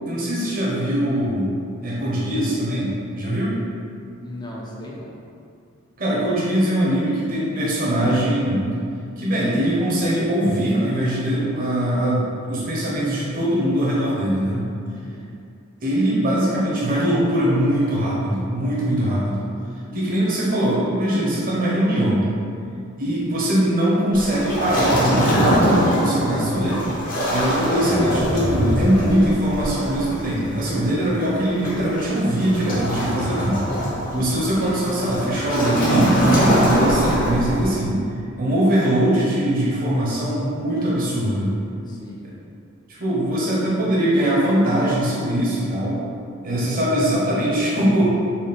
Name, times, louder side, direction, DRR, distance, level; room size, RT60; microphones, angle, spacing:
voice 1, 0.1-1.5 1.8-3.6 6.0-8.6 9.2-14.7 15.8-19.5 19.9-22.3 23.0-26.9 27.3-33.7 34.1-36.2 36.6-38.0 38.4-41.5 42.2-42.3 42.9-46.0 46.4-48.1, right 1 dB, 45° right, -6 dB, 0.8 m, -21 dB
voice 2, 4.2-5.1 14.9-15.4 19.0-19.1 41.9-42.3, left 1 dB, 20° left, -3 dB, 0.5 m, -38 dB
Waves surf, 24.1-37.8, equal, 40° left, 0.8 m, -22 dB
4.1 x 2.1 x 3.4 m, 2.4 s
head